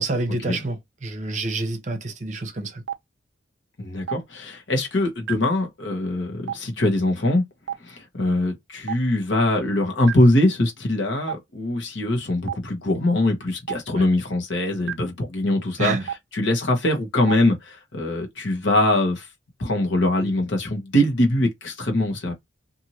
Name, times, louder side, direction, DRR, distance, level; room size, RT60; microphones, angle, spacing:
voice 1, 0.0-2.8 14.0-14.1 15.8-16.0 20.2-20.3, right 2 dB, 40° right, 0.7 m, -28 dB
Stream, 2.9-3.0 4.1-4.2 5.3-5.4 6.5-6.6 7.7-7.8 8.9-9.0 10.1-10.2 11.3-11.4 12.5-12.6 13.7-13.8 14.9-15.0 16.1-16.2 17.3-17.4, right 9 dB, 70° right, 0.4 m, -27 dB
voice 2, 3.8-7.4 7.8-16.0 16.3-19.3 19.6-22.3, left 1 dB, 75° left, 1.0 m, -22 dB
2.7 x 2.6 x 2.9 m
head